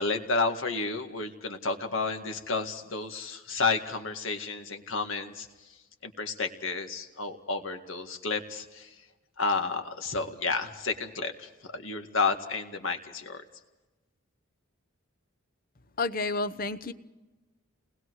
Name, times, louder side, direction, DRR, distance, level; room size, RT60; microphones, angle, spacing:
voice 1, 0.0-5.5 6.0-8.9 9.4-13.4, left 4 dB, 75° left, 6 dB, 2.0 m, -31 dB
voice 2, 16.0-16.9, left 3 dB, 45° left, 10 dB, 0.9 m, -30 dB
30.0 x 20.5 x 4.8 m, 1.1 s
head